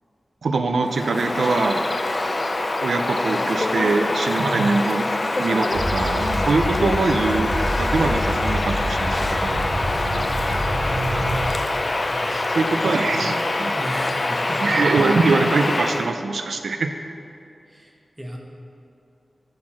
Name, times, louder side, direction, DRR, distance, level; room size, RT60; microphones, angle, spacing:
voice 1, 0.4-1.9 2.8-5.1 5.4-9.7 12.5-13.7 14.6-17.1, right 3 dB, 90° right, 6 dB, 0.3 m, -23 dB
Bird vocalization bird call bird song, 0.8-16.1, left 2 dB, 40° left, 0.3 m, -24 dB
sound 1, 5.7-11.5, equal, 60° right, 0.8 m, -27 dB
voice 2, 12.1-12.9 13.8-14.8 17.7-18.4, equal, 10° right, 0 dB, 0.9 m, -35 dB
6.4 x 4.3 x 5.8 m, 2.5 s
wide cardioid pair, 95°, 0 cm